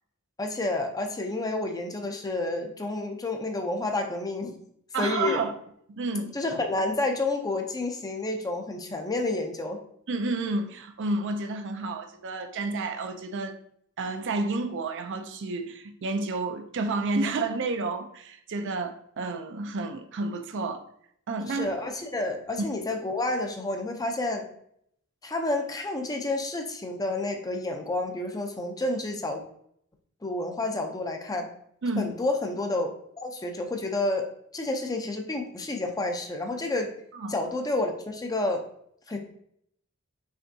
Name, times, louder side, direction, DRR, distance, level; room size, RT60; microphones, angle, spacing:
voice 1, 0.4-4.6 5.0-5.4 6.3-9.8 21.5-24.5 25.2-29.4 30.2-31.5 32.0-32.9 33.2-36.9 37.3-38.6 39.1-39.2, left 2 dB, 15° left, 0.5 m, -30 dB
voice 2, 4.9-5.5 5.9-6.4 10.1-13.5 14.0-20.8 21.3-21.7 31.8-32.1 37.2-37.3, right 3 dB, 60° right, 0.5 m, -30 dB
5.7 x 3.4 x 2.7 m
head